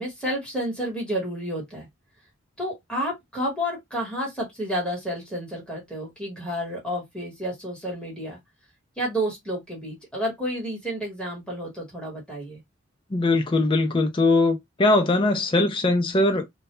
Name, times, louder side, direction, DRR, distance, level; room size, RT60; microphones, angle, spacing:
voice 1, 0.0-1.9 2.6-8.4 9.0-12.6, equal, 5° left, 1.1 m, -30 dB
voice 2, 13.1-16.5, left 2 dB, 25° left, 0.4 m, -21 dB
2.2 x 2.2 x 2.9 m
head